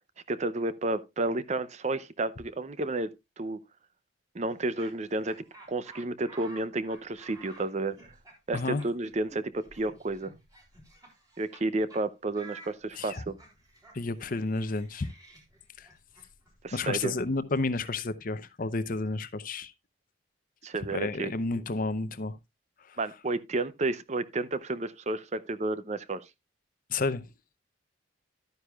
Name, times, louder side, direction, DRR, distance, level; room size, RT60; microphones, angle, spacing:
voice 1, 0.3-3.6 4.3-5.4 5.7-8.0 8.5-10.3 11.4-13.3 16.6-17.1 20.6-21.3 23.0-26.3, right 2 dB, 35° right, 0.6 m, -31 dB
Laughter, 4.5-11.6 11.9-12.0 12.3-18.1, right 2 dB, 20° right, 3.4 m, -53 dB
voice 2, 8.5-8.8 12.9-13.2 13.9-15.1 15.8-15.9 16.7-19.7 20.9-22.4 22.9-23.0 26.9-27.3, left 3 dB, 45° left, 0.6 m, -31 dB
12.0 x 9.5 x 2.3 m
head